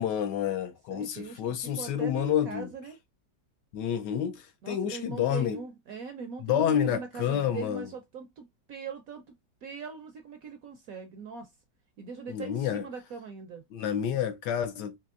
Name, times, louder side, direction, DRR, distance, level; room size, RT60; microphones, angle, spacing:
voice 1, 0.0-2.7 3.7-5.6 6.4-7.9 12.3-12.9 13.7-15.0, left 9 dB, 75° left, 1.2 m, -29 dB
voice 2, 0.9-3.0 4.6-9.3 9.6-11.5 12.0-13.6, right 5 dB, 70° right, 0.9 m, -41 dB
4.4 x 2.9 x 2.4 m
omnidirectional pair, 2.0 m